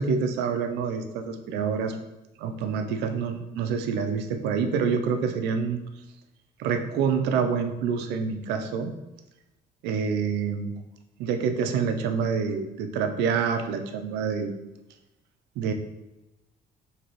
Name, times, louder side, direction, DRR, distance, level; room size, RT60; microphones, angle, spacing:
voice 1, 0.0-2.0 2.4-5.8 6.6-8.9 9.8-10.7 11.2-14.5 15.6-15.7, right 6 dB, 85° right, 7 dB, 0.5 m, -27 dB
3.8 x 2.9 x 3.1 m, 0.96 s
cardioid pair, 110°, 17 cm